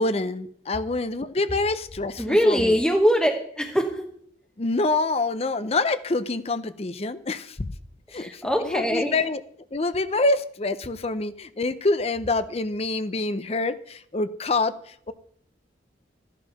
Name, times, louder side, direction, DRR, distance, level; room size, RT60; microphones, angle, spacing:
voice 1, 0.0-2.8 4.6-7.7 8.1-9.4 9.7-15.1, left 2 dB, 35° left, 13 dB, 0.6 m, -26 dB
voice 2, 2.2-4.0 8.1-9.1, equal, 5° left, 1 dB, 1.0 m, -22 dB
13.5 x 10.5 x 5.8 m, 0.63 s
head